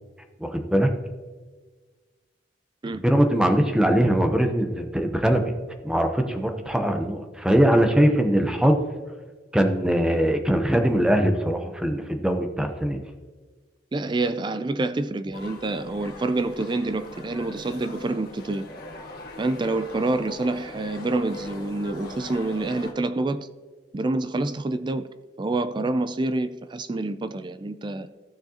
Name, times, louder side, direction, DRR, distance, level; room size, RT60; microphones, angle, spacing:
voice 1, 0.4-0.9 2.9-5.5 5.8-8.8 9.5-13.0, equal, 5° right, 0.7 m, -21 dB
voice 2, 13.9-18.7 19.4-23.5 23.9-25.1 25.4-28.1, right 2 dB, 25° right, 0.3 m, -27 dB
sound 1, 15.3-22.9, left 2 dB, 55° left, 1.6 m, -41 dB
15.0 x 6.4 x 2.8 m
head